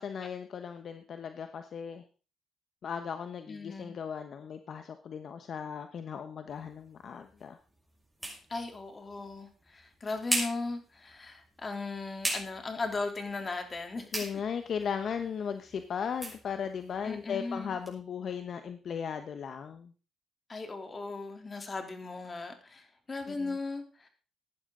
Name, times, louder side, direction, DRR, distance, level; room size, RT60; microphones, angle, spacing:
voice 1, 0.0-2.0 2.8-7.6 14.1-19.9 23.3-23.6, left 7 dB, 55° left, 8 dB, 1.1 m, -37 dB
voice 2, 3.5-4.0 8.5-14.1 17.0-17.8 20.5-24.1, left 3 dB, 30° left, 5 dB, 3.3 m, -37 dB
sound 1, 6.5-18.0, right 1 dB, 5° right, 6.3 m, -41 dB
16.0 x 11.0 x 3.9 m, 0.36 s
cardioid pair, 90°, 0 cm